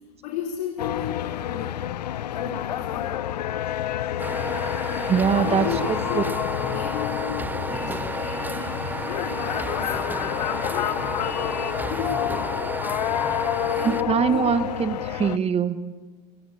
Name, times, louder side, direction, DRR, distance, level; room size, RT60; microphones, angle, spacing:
voice 1, 0.2-1.8 2.3-3.3 5.0-11.6 11.9-12.8 13.6-14.7, left 7 dB, 70° left, -1 dB, 4.5 m, -35 dB
sound 1, 0.8-15.4, left 12 dB, 85° left, 0.8 m, -29 dB
sound 2, 4.2-14.0, right 3 dB, 10° right, 0.7 m, -32 dB
voice 2, 5.1-6.2 13.8-15.9, right 7 dB, 30° right, 11 dB, 1.9 m, -23 dB
29.5 x 17.0 x 8.0 m, 1.3 s
hypercardioid pair, 95°, 21 cm